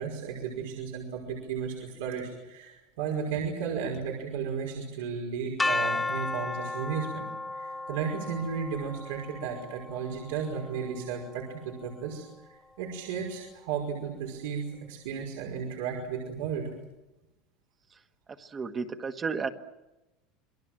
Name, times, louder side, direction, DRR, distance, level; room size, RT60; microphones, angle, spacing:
voice 1, 0.0-7.3 7.5-14.6 14.9-16.7, right 6 dB, 85° right, -1 dB, 5.3 m, -34 dB
sound 1, 5.6-11.5, left 2 dB, 10° left, 0.9 m, -34 dB
voice 2, 18.3-19.5, right 5 dB, 20° right, 7 dB, 1.5 m, -33 dB
28.0 x 22.5 x 7.6 m, 0.99 s
supercardioid pair, 145°, 0 cm